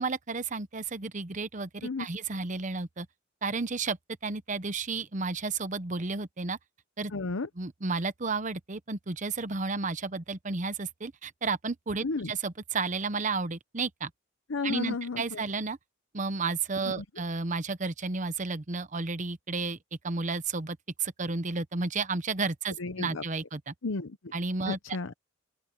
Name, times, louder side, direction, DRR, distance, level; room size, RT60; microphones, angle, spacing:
voice 1, 0.0-3.1 3.4-4.0 4.2-6.6 7.0-7.1 7.6-14.1 14.6-15.8 16.1-19.8 20.0-23.7 24.3-24.8, right 4 dB, 40° right, 0.9 m, -32 dB
voice 2, 7.1-7.5 12.0-12.3 14.5-15.4 17.0-17.1 22.8-23.2 23.8-24.2 24.7-25.1, left 3 dB, 90° left, 0.8 m, -33 dB
open air
head